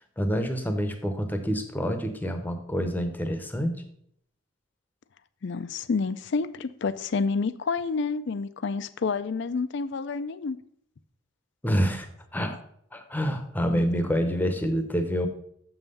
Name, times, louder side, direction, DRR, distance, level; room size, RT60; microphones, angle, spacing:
voice 1, 0.2-3.8 11.6-12.1 12.3-12.6 12.9-15.3, equal, 10° left, 7 dB, 0.8 m, -27 dB
voice 2, 5.4-10.6 13.6-13.8, left 4 dB, 55° left, 14 dB, 0.4 m, -29 dB
7.1 x 5.6 x 5.4 m, 0.69 s
head